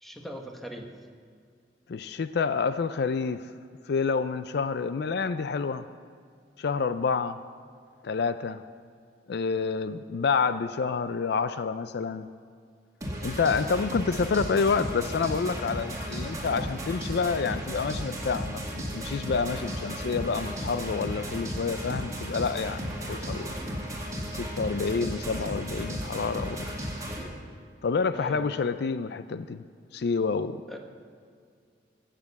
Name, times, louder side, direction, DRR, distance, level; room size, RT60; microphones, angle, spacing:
voice 1, 0.0-0.9 28.1-28.6 30.7-30.8, equal, ahead, 2 dB, 1.3 m, -40 dB
voice 2, 1.9-3.5 3.9-5.8 6.6-7.4 8.0-8.6 9.3-12.3 13.2-23.5 24.3-26.7 27.8-29.6 29.9-30.6, left 5 dB, 65° left, 12 dB, 0.4 m, -28 dB
sound 1, 13.0-27.2, equal, 20° right, 2.2 m, -34 dB
13.5 x 7.6 x 8.2 m, 2.2 s
head